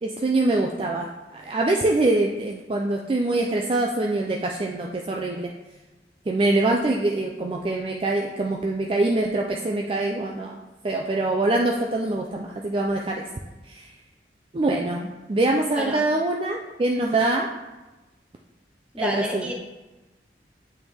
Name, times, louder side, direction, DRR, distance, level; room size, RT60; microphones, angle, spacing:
voice 1, 0.0-5.5 6.3-10.6 10.8-13.2 13.7-13.9 14.5-17.5 19.0-19.5, right 2 dB, 30° right, 0 dB, 0.4 m, -24 dB
voice 2, 18.9-19.5, left 1 dB, 5° right, 0 dB, 0.8 m, -29 dB
8.5 x 3.5 x 3.3 m, 1.1 s
head